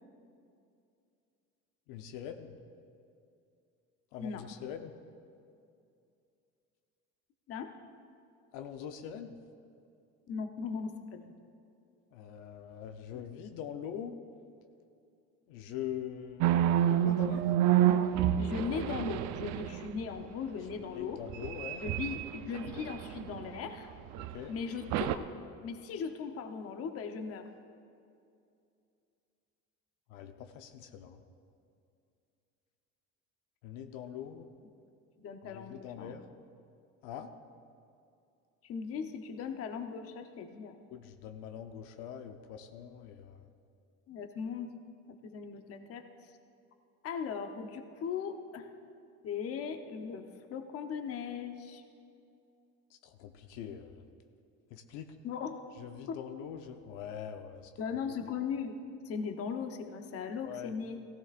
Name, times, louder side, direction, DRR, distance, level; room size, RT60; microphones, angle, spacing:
voice 1, 1.9-2.5 4.1-4.9 8.5-9.4 12.1-14.2 15.5-16.5 16.9-17.5 20.9-21.8 24.2-24.5 30.1-31.2 33.6-34.5 35.4-36.3 37.0-37.3 40.9-43.5 52.9-54.0 54.7-55.1 55.8-57.7 60.4-60.7, left 9 dB, 85° left, 6 dB, 0.9 m, -43 dB
voice 2, 10.3-11.3 18.4-21.2 21.8-23.9 24.5-25.2 25.6-27.4 35.2-36.2 38.6-40.8 44.1-44.7 45.1-46.3 47.0-48.7 49.2-51.8 55.2-55.7 56.1-56.3 57.8-58.7 59.0-61.0, left 6 dB, 50° left, 6 dB, 0.9 m, -38 dB
sound 1, 16.4-20.0 21.3-23.6 24.1-24.3 24.9-25.2, right 11 dB, 65° right, 0.6 m, -29 dB
17.5 x 15.5 x 2.5 m, 2.5 s
cardioid pair, 140°, 31 cm